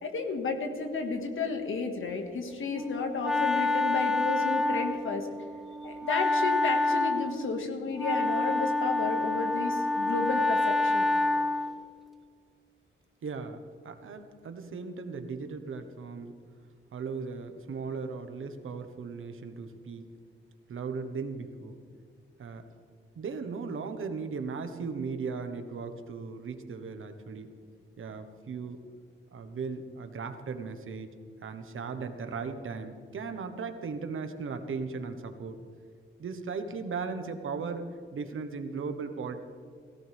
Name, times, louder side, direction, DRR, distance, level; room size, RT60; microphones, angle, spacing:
voice 1, 0.0-5.3 5.8-11.1, left 4 dB, 75° left, 4 dB, 2.0 m, -32 dB
Wind instrument woodwind instrument, 2.7-11.8, left 2 dB, ahead, 0.7 m, -28 dB
voice 2, 13.2-16.4 16.9-20.1 20.7-21.8 22.4-22.7 23.1-27.5 28.0-28.8 29.3-31.1 31.4-35.6 36.2-39.4, right 5 dB, 80° right, 8 dB, 1.3 m, -37 dB
17.5 x 17.0 x 3.6 m, 2.1 s
wide cardioid pair, 150°, 21 cm